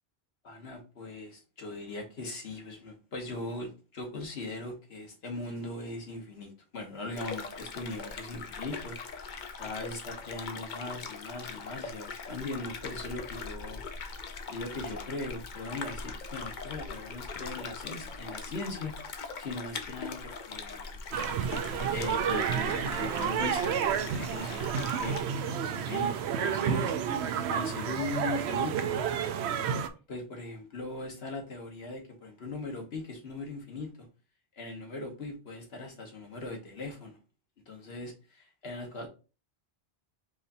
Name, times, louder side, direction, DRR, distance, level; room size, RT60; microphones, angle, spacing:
voice 1, 0.4-9.0 9.6-13.8 14.5-21.0 21.9-26.9 27.4-29.0 30.1-34.1 34.5-37.2 37.7-39.1, left 2 dB, 70° left, 1.5 m, -39 dB
sound 1, 7.1-25.2, left 4 dB, 50° left, 0.7 m, -41 dB
sound 2, 21.1-29.9, right 8 dB, 80° right, 0.8 m, -30 dB
4.8 x 2.6 x 4.1 m
omnidirectional pair, 1.1 m